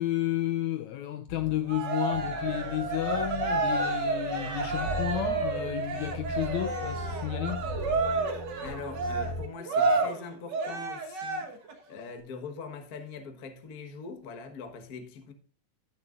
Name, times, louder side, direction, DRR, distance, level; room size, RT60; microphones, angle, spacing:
voice 1, 0.0-7.7, left 14 dB, 80° left, 1.7 m, -32 dB
sound 1, 1.3-1.8 2.8-2.9 5.1-5.6 6.0-6.3 6.7-7.1 7.5-8.1 8.6-9.1, left 3 dB, 30° left, 2.2 m, -44 dB
Cheering, 1.7-11.7, right 3 dB, 55° right, 1.3 m, -30 dB
sound 2, 2.1-9.5, right 1 dB, 75° right, 2.0 m, -39 dB
voice 2, 8.6-11.5 11.9-15.3, left 5 dB, 65° left, 0.9 m, -42 dB
17.0 x 6.7 x 2.5 m
omnidirectional pair, 3.8 m